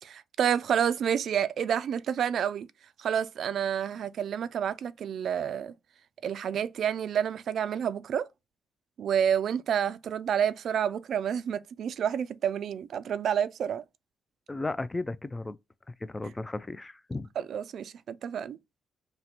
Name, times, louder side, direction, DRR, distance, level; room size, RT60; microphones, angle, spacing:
voice 1, 0.0-2.7 3.0-5.7 6.2-8.3 9.0-13.8 17.4-18.6, right 8 dB, 65° right, 0.3 m, -29 dB
voice 2, 14.5-15.6 15.9-17.3, left 2 dB, 20° left, 0.3 m, -35 dB
2.8 x 2.1 x 4.0 m
cardioid pair, 90°, 0 cm